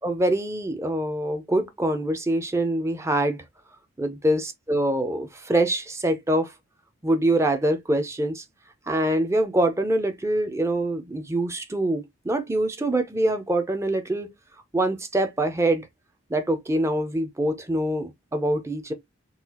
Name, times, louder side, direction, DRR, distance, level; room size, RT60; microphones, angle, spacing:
voice 1, 0.0-3.4 4.0-6.5 7.0-8.4 8.9-14.3 14.7-15.9 16.3-18.9, right 1 dB, 15° right, 0.5 m, -24 dB
3.8 x 2.3 x 2.8 m
head